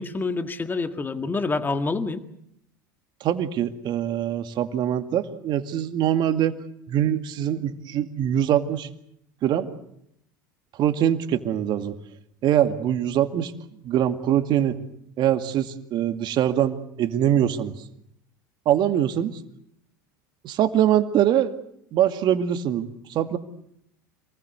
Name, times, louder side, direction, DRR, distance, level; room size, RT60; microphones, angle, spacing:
voice 1, 0.0-2.2, left 3 dB, 20° left, 8 dB, 1.8 m, -27 dB
voice 2, 3.2-6.6 6.9-8.9 9.4-9.7 10.8-12.0 12.4-13.5 13.8-14.8 15.2-17.7 18.7-19.3 20.4-21.5 21.9-23.4, right 10 dB, 45° right, 8 dB, 2.2 m, -23 dB
27.5 x 20.0 x 8.1 m, 0.75 s
hypercardioid pair, 80°, 10 cm